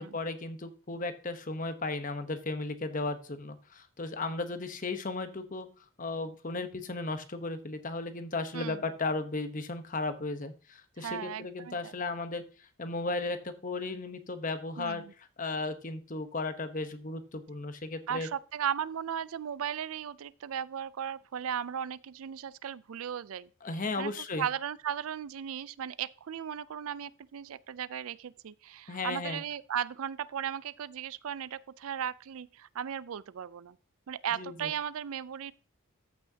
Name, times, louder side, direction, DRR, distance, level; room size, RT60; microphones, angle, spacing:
voice 1, 0.0-5.7 6.0-15.0 15.4-18.3 23.6-24.4 28.9-29.4 34.3-34.7, left 3 dB, 35° left, 0.9 m, -35 dB
voice 2, 11.0-11.9 14.8-15.1 18.1-23.5 24.0-24.1 24.4-33.8 34.1-35.5, right 8 dB, 75° right, 0.4 m, -36 dB
14.0 x 6.2 x 2.8 m
head